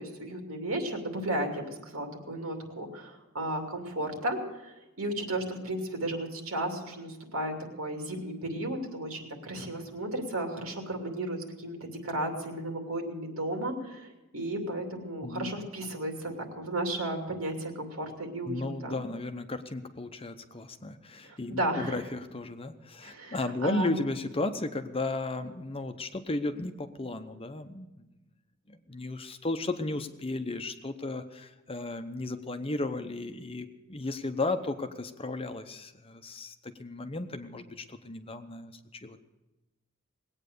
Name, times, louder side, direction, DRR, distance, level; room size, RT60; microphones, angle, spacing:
voice 1, 0.0-19.0 21.2-22.0 23.0-24.0, right 1 dB, 85° right, 3 dB, 2.7 m, -34 dB
voice 2, 15.2-15.6 18.5-27.9 28.7-39.2, left 2 dB, 25° left, 8 dB, 0.8 m, -34 dB
20.0 x 8.9 x 6.7 m, 1.0 s
head